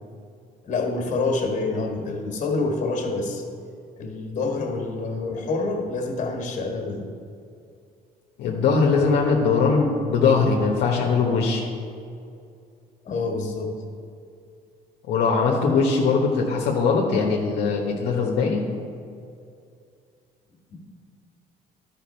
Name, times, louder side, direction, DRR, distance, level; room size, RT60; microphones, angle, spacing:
voice 1, 0.6-3.4 4.0-7.1 13.1-13.7, left 3 dB, 50° left, 2 dB, 1.9 m, -27 dB
voice 2, 8.4-11.7 15.1-18.6, left 4 dB, 80° left, -1 dB, 1.1 m, -21 dB
12.0 x 5.9 x 4.4 m, 2.4 s
cardioid pair, 110°, 17 cm